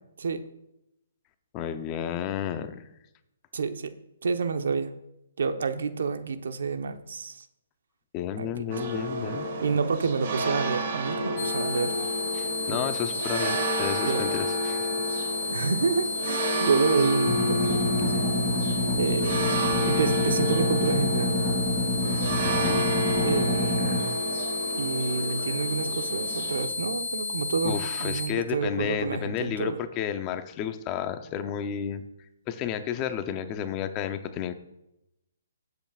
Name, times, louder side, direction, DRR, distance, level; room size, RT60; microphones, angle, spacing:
voice 1, 1.5-2.8 8.1-9.5 12.3-14.9 22.4-22.9 27.6-32.0 32.5-34.5, left 9 dB, 25° left, 9 dB, 0.7 m, -32 dB
voice 2, 3.5-3.9 4.2-4.9 5.4-7.5 8.4-8.9 9.6-11.9 12.7-12.9 14.1-14.2 15.5-18.3 19.0-19.4 19.8-21.4 23.2-23.8 24.7-29.8, right 5 dB, 70° right, 9 dB, 0.9 m, -28 dB
sound 1, 8.7-26.7, equal, 50° right, 1.7 m, -30 dB
sound 2, 11.4-28.3, left 3 dB, 55° left, 1.4 m, -32 dB
sound 3, 17.3-24.0, left 1 dB, 5° left, 2.3 m, -28 dB
19.5 x 8.1 x 2.5 m, 0.86 s
hypercardioid pair, 160°, 0 cm